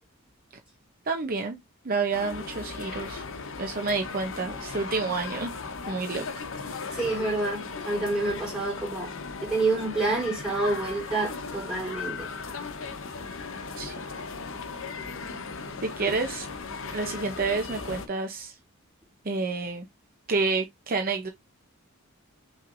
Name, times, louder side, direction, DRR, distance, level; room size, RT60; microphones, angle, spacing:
voice 1, 1.1-1.6 1.8-3.2 3.6-5.5 5.9-6.3 13.8-13.9 15.8-16.5 16.9-18.5 19.2-19.8 20.3-21.3, right 4 dB, 45° right, 0.7 m, -29 dB
sound 1, 2.1-18.1, left 4 dB, 65° left, 0.9 m, -37 dB
voice 2, 6.9-9.1 9.4-12.3, right 3 dB, 5° right, 3.0 m, -28 dB
5.8 x 3.2 x 2.5 m
head